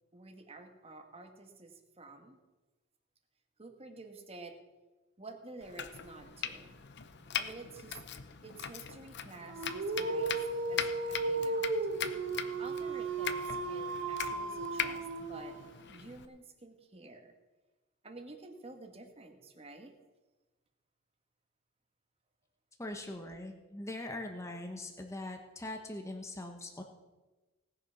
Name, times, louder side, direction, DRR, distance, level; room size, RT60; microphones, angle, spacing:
voice 1, 0.1-2.4 3.6-4.6 5.2-6.7 7.3-8.0 8.4-10.4 10.7-11.7 12.6-15.6 15.9-17.3 18.0-19.9, right 3 dB, 30° right, 5 dB, 1.4 m, -50 dB
Domestic sounds home sounds, 5.6-16.3, left 9 dB, 55° left, 0.7 m, -41 dB
Dog, 9.5-15.8, right 3 dB, 60° right, 1.2 m, -35 dB
voice 2, 22.8-26.8, left 1 dB, 15° left, 3 dB, 1.1 m, -42 dB
18.5 x 6.9 x 5.7 m, 1.2 s
head